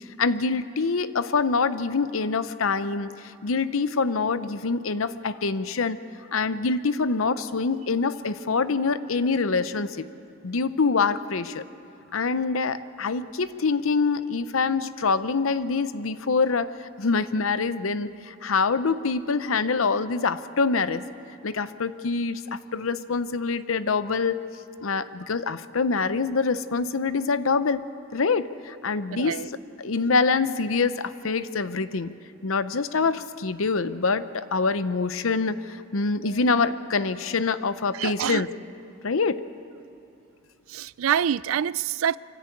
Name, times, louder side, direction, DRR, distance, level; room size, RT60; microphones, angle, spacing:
voice 1, 0.2-3.1 3.4-6.0 6.3-10.1 10.4-11.6 12.1-21.0 21.4-24.4 24.8-27.9 28.1-29.4 29.8-32.1 32.4-38.5 39.0-39.4, left 4 dB, 85° left, 0.7 m, -25 dB
voice 2, 29.1-29.5 37.9-38.4 40.7-42.2, right 8 dB, 85° right, 0.4 m, -26 dB
24.5 x 15.5 x 8.5 m
head